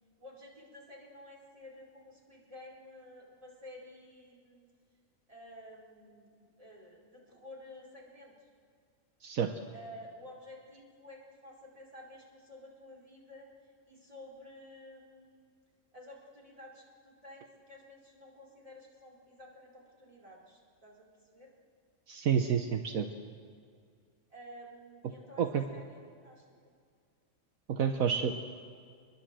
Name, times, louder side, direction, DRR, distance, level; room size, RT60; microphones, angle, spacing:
voice 1, 0.2-4.7 5.3-8.5 9.7-13.5 13.9-15.4 15.9-21.1 21.3-21.5 24.3-25.4 25.7-26.4, left 1 dB, 25° right, -3 dB, 4.8 m, -52 dB
voice 2, 9.2-9.5 22.1-23.1 25.4-25.6 27.7-28.3, right 7 dB, 75° right, 6 dB, 1.4 m, -29 dB
25.0 x 21.5 x 7.7 m, 2.2 s
omnidirectional pair, 1.5 m